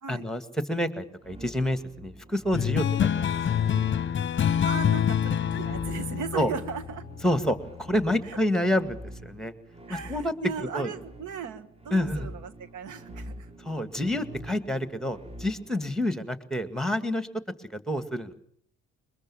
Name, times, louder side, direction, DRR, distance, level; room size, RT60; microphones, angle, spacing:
voice 1, 0.1-3.4 6.3-6.5 7.2-9.5 9.9-10.3 10.7-10.9 11.9-12.3 13.6-17.3 17.6-18.3, left 1 dB, ahead, 10 dB, 2.0 m, -28 dB
sound 1, 1.2-16.0, right 1 dB, 20° right, 1.5 m, -45 dB
sound 2, 2.5-7.5, left 8 dB, 40° left, 0.8 m, -26 dB
voice 2, 4.6-7.0 8.2-8.4 9.9-13.5, right 6 dB, 80° right, 12 dB, 1.5 m, -37 dB
23.0 x 21.0 x 7.2 m, 0.62 s
cardioid pair, 90°, 30 cm